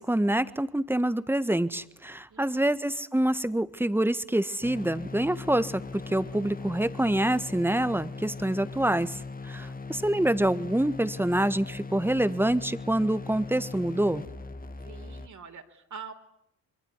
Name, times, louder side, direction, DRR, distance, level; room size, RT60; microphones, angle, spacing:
voice 1, 0.0-14.2, right 1 dB, 5° right, 14 dB, 1.6 m, -26 dB
voice 2, 2.3-2.8 10.1-10.3 14.8-16.1, right 6 dB, 45° right, 5 dB, 4.3 m, -45 dB
sound 1, 4.6-15.3, left 3 dB, 20° left, 1.8 m, -39 dB
26.0 x 23.5 x 9.8 m, 0.72 s
supercardioid pair, 70°, 42 cm